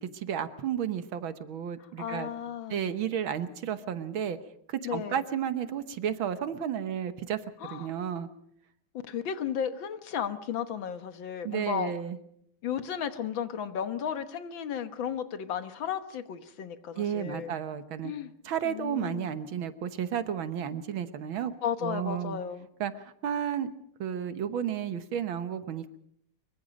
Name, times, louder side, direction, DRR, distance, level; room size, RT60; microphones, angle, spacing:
voice 1, 0.0-2.3 2.7-4.4 4.7-8.3 11.4-12.2 17.0-18.1 18.5-21.5 21.8-22.4 22.8-23.7 24.0-26.0, right 9 dB, 75° right, 11 dB, 1.9 m, -32 dB
voice 2, 1.8-2.8 4.8-5.2 7.6-7.9 9.1-11.9 12.6-17.5 18.0-18.3 18.6-19.3 21.6-22.7, left 8 dB, 70° left, 10 dB, 2.0 m, -34 dB
25.0 x 23.5 x 5.2 m, 0.70 s
omnidirectional pair, 2.3 m